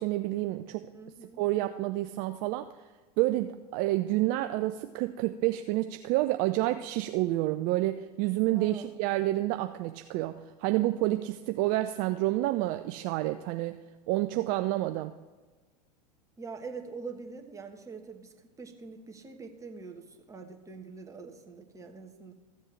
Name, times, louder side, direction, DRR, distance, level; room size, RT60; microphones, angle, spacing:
voice 1, 0.0-0.9 1.4-2.7 3.2-13.8 14.1-15.1, right 16 dB, 45° right, 8 dB, 0.4 m, -29 dB
voice 2, 0.9-1.4 8.5-9.0 16.4-22.3, right 4 dB, 15° right, 4 dB, 1.3 m, -44 dB
14.5 x 7.3 x 3.3 m, 1.3 s
hypercardioid pair, 90°, 21 cm